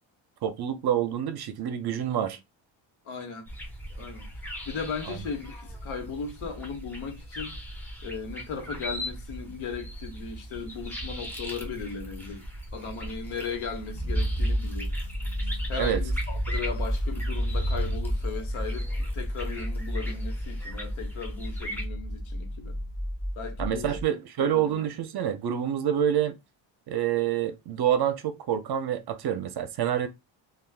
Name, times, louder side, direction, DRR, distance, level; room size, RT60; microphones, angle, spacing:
voice 1, 0.4-2.4 5.1-5.2 15.8-16.0 23.6-26.3 26.9-30.1, right 10 dB, 55° right, 0.6 m, -27 dB
voice 2, 3.0-3.5 4.0-4.3 4.6-7.6 8.0-12.4 12.7-14.9 15.7-22.8 23.4-24.0 24.4-24.8, left 5 dB, 70° left, 1.1 m, -37 dB
sound 1, 3.5-21.9, equal, 5° left, 0.7 m, -39 dB
sound 2, 13.9-24.0, equal, 20° left, 1.2 m, -31 dB
3.4 x 2.3 x 2.3 m
cardioid pair, 140°, 49 cm